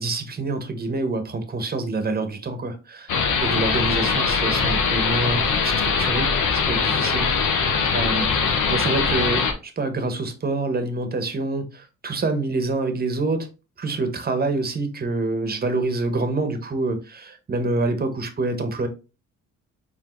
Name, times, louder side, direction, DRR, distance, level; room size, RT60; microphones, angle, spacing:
voice 1, 0.0-3.1 3.4-6.3 6.7-7.7 7.9-13.5 13.8-18.9, right 2 dB, 30° right, 1.1 m, -26 dB
sound 1, 3.1-9.5, left 5 dB, 75° left, 1.0 m, -22 dB
4.7 x 3.3 x 3.2 m
cardioid pair, 90°, 30 cm